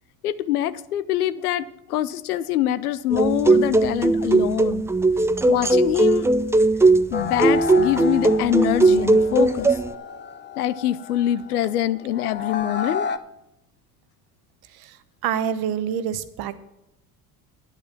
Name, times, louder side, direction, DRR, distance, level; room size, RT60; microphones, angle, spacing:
voice 1, 0.2-4.9 5.5-6.3 7.1-9.8 10.6-13.1, left 12 dB, 90° left, 16 dB, 0.6 m, -24 dB
sound 1, 3.1-9.9, right 2 dB, 5° right, 0.3 m, -19 dB
sound 2, 7.1-13.2, left 5 dB, 25° left, 0.7 m, -32 dB
voice 2, 15.2-16.6, right 8 dB, 55° right, 13 dB, 1.0 m, -26 dB
9.9 x 9.0 x 5.8 m, 0.89 s
hypercardioid pair, 70°, 44 cm